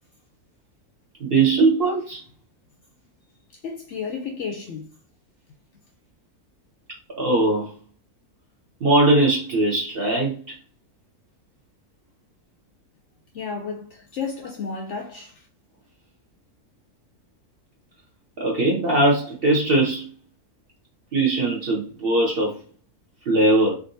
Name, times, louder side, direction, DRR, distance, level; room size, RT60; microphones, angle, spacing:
voice 1, 1.2-2.2 7.2-7.7 8.8-10.5 18.4-20.1 21.1-22.5 23.3-23.8, right 2 dB, 50° right, 0.7 m, -20 dB
voice 2, 3.6-4.9 13.3-15.5, left 5 dB, 65° left, 0.7 m, -32 dB
3.6 x 2.5 x 2.6 m
omnidirectional pair, 1.6 m